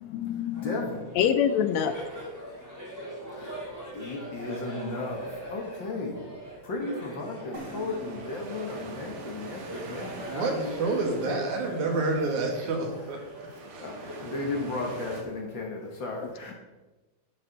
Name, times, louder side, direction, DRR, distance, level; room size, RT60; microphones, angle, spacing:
voice 1, 0.0-0.7 1.2-2.0, left 9 dB, 80° left, 9 dB, 1.7 m, -25 dB
Laughter, 0.5-15.5, equal, 5° right, 3.1 m, -43 dB
voice 2, 0.6-1.0 3.4-3.5 3.9-5.3 5.5-6.2 6.6-12.3 13.8-16.5, left 2 dB, 45° left, 0 dB, 1.8 m, -35 dB
sound 1, 7.5-11.2, right 1 dB, 35° right, 2.4 m, -48 dB
sound 2, 7.5-15.2, right 3 dB, 55° right, 2.1 m, -45 dB
voice 3, 10.8-13.9, right 3 dB, 85° right, 2 dB, 3.3 m, -29 dB
10.0 x 10.0 x 4.1 m, 1.1 s
omnidirectional pair, 3.4 m